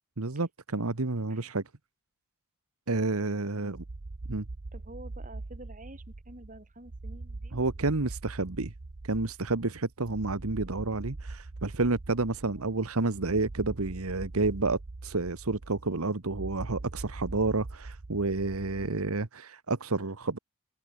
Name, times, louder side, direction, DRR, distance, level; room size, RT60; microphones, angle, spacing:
voice 1, 0.2-1.6 2.9-3.8 4.3-4.4 7.5-8.7 9.0-20.4, right 3 dB, 80° right, 1.3 m, -30 dB
sound 1, 3.7-19.3, right 2 dB, 55° right, 0.9 m, -42 dB
voice 2, 4.7-8.1 12.5-12.7, right 1 dB, 35° right, 6.2 m, -50 dB
head